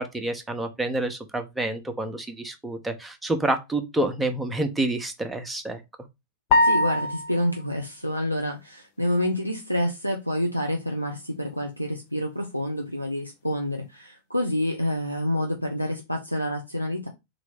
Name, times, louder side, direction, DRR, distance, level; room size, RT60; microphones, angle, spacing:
voice 1, 0.0-5.8, right 2 dB, 5° right, 0.8 m, -28 dB
sound 1, 6.5-7.6, left 2 dB, 45° left, 0.7 m, -21 dB
voice 2, 6.6-17.1, left 1 dB, 90° left, 0.5 m, -28 dB
3.8 x 3.0 x 3.5 m
figure-of-eight pair, 90°, 0 cm